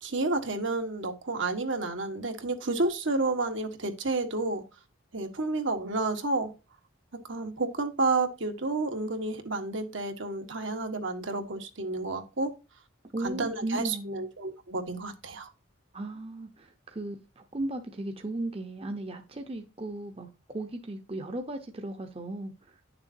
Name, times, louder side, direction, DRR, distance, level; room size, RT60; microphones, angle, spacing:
voice 1, 0.0-4.6 5.1-6.5 7.3-12.5 13.2-15.5, right 3 dB, 65° right, 1.4 m, -30 dB
voice 2, 13.1-14.3 15.9-22.5, right 2 dB, 30° right, 0.8 m, -36 dB
10.0 x 6.9 x 2.7 m
head